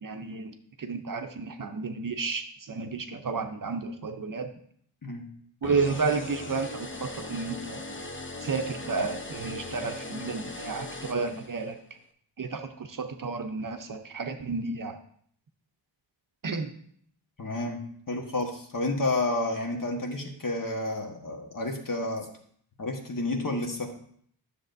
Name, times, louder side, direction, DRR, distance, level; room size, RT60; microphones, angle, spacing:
voice 1, 0.0-4.5 5.6-7.8 8.4-11.8 12.4-15.0 16.4-16.7, right 4 dB, 45° right, 6 dB, 0.7 m, -32 dB
sound 1, 5.6-11.8, left 2 dB, 25° left, 0.7 m, -39 dB
voice 2, 17.4-17.8 18.1-22.3 22.8-23.9, left 2 dB, 45° left, 2 dB, 1.4 m, -30 dB
9.7 x 6.9 x 2.6 m, 0.62 s
wide cardioid pair, 80°, 45 cm